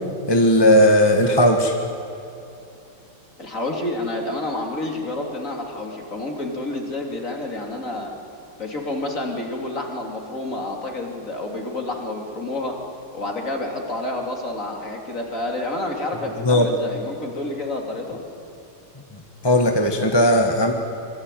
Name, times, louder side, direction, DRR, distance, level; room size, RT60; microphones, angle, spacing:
voice 1, 0.3-1.7 16.4-16.7 19.4-20.7, equal, 15° left, 3 dB, 1.4 m, -16 dB
voice 2, 3.4-8.1 8.6-12.8 13.1-18.2, left 2 dB, 40° left, 1 dB, 3.5 m, -29 dB
26.0 x 24.0 x 9.3 m, 2.8 s
omnidirectional pair, 2.2 m